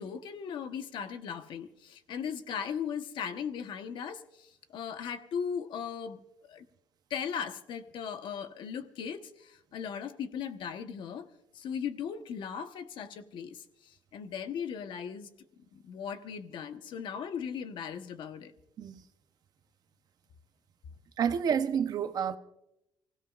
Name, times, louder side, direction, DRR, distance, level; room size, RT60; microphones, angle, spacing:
voice 1, 0.0-6.6 7.1-11.3 11.5-15.3 15.7-18.5, left 7 dB, 60° left, 1.1 m, -38 dB
voice 2, 21.2-22.4, right 7 dB, 45° right, 0.8 m, -29 dB
30.0 x 16.5 x 2.5 m
cardioid pair, 165°, 9 cm